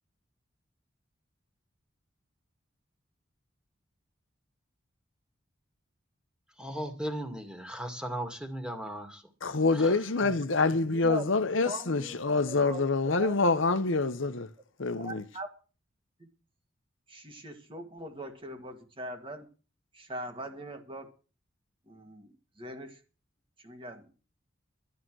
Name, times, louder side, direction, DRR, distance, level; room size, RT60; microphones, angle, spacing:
voice 1, 6.6-9.2 9.8-9.9, right 1 dB, 5° right, 2.2 m, -36 dB
voice 2, 9.4-14.5 14.8-15.2, left 3 dB, 75° left, 1.0 m, -26 dB
voice 3, 10.9-11.2 11.7-12.1 12.5-12.8 13.2-13.3 13.6-13.8 15.0-15.5 16.2-16.3 17.1-19.5 19.9-21.1 21.9-22.3 22.6-23.0 23.6-24.1, right 1 dB, 25° right, 1.9 m, -40 dB
12.5 x 11.5 x 6.3 m
head